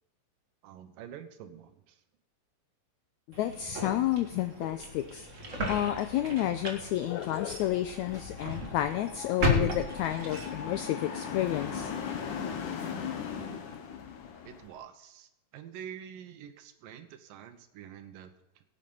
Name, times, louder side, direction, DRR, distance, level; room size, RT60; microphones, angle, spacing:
voice 1, 0.6-2.0 14.5-18.6, right 9 dB, 85° right, 9 dB, 2.7 m, -47 dB
sound 1, 3.3-10.8, left 1 dB, 40° right, 1.0 m, -35 dB
voice 2, 3.4-5.3 5.7-11.9, left 12 dB, 90° left, 9 dB, 1.6 m, -30 dB
sound 2, 7.4-14.7, left 7 dB, 70° left, 2.7 m, -39 dB
17.5 x 8.3 x 5.5 m, 0.87 s
omnidirectional pair, 3.9 m